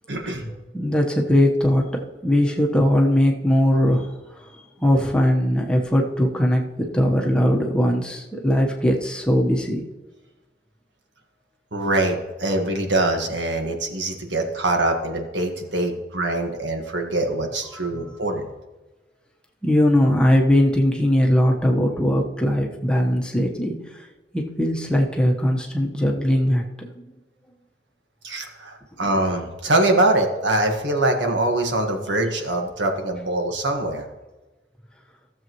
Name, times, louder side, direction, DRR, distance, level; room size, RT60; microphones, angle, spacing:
voice 1, 0.1-0.5 11.7-18.5 28.2-34.0, right 2 dB, 85° right, 3 dB, 1.6 m, -23 dB
voice 2, 0.7-4.1 4.4-9.8 17.7-18.0 19.6-24.1 24.3-26.9, equal, 5° left, 0 dB, 1.1 m, -20 dB
16.0 x 7.4 x 3.1 m, 1.1 s
head